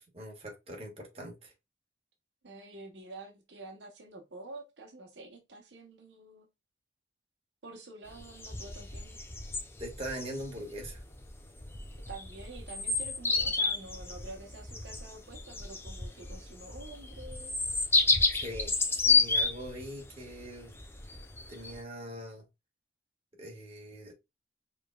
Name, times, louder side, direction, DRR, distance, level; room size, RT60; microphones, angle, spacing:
voice 1, 0.0-1.5 9.8-11.0 18.3-20.8 21.5-22.4 23.4-24.1, equal, 30° right, 1.4 m, -42 dB
voice 2, 2.4-6.5 7.6-9.2 12.1-17.5, right 2 dB, 75° right, 0.9 m, -48 dB
sound 1, 8.1-21.8, left 4 dB, 15° left, 0.6 m, -31 dB
5.0 x 3.4 x 2.2 m
head